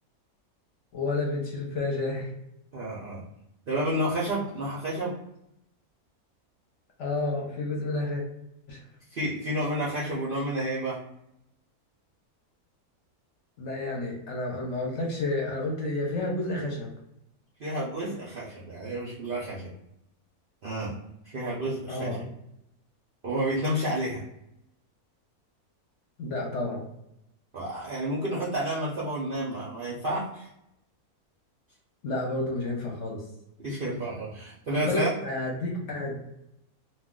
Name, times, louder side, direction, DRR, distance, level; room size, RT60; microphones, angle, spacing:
voice 1, 0.9-2.3 7.0-8.2 8.7-8.8 13.6-16.9 21.9-22.3 26.2-26.8 32.0-33.2 34.9-36.2, left 2 dB, 60° left, -1 dB, 0.9 m, -30 dB
voice 2, 2.7-3.2 3.7-5.1 9.1-11.0 17.6-19.7 20.6-20.9 21.3-22.2 23.2-24.2 27.5-30.5 33.6-35.1, right 1 dB, 60° right, -6 dB, 0.6 m, -30 dB
2.3 x 2.3 x 3.6 m, 0.82 s
omnidirectional pair, 1.6 m